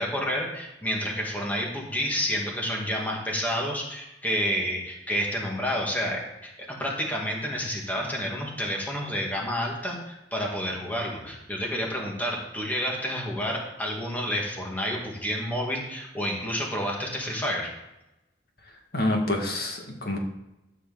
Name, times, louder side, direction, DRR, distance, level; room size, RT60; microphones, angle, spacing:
voice 1, 0.0-17.7, equal, 10° left, -1 dB, 2.3 m, -29 dB
voice 2, 18.9-20.2, left 1 dB, 60° left, 1 dB, 2.2 m, -27 dB
13.5 x 4.9 x 7.8 m, 0.94 s
head